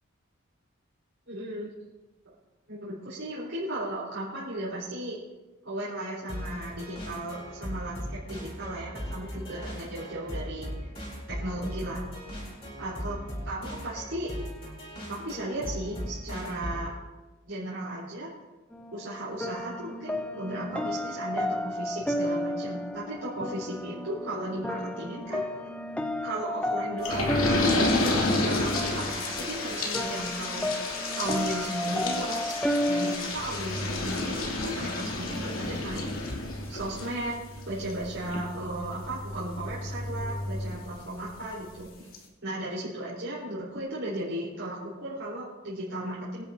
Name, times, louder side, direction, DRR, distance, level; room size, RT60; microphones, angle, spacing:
voice 1, 1.3-1.7 2.7-5.2 5.6-10.7 11.3-12.1 12.8-13.2 13.4-14.3 15.2-16.9 17.5-18.3 18.9-25.4 26.2-27.9 28.4-30.7 31.2-32.5 32.9-36.2 36.7-37.4 37.7-42.1 42.4-46.5, right 1 dB, 70° right, -8 dB, 4.1 m, -35 dB
sound 1, 6.3-16.9, equal, 25° left, 4.2 m, -38 dB
sound 2, 18.7-33.2, left 1 dB, 5° left, 0.5 m, -32 dB
sound 3, 27.0-41.3 41.8-41.9 42.1-42.2, left 2 dB, 90° left, 2.7 m, -31 dB
23.0 x 10.5 x 2.7 m, 1.2 s
head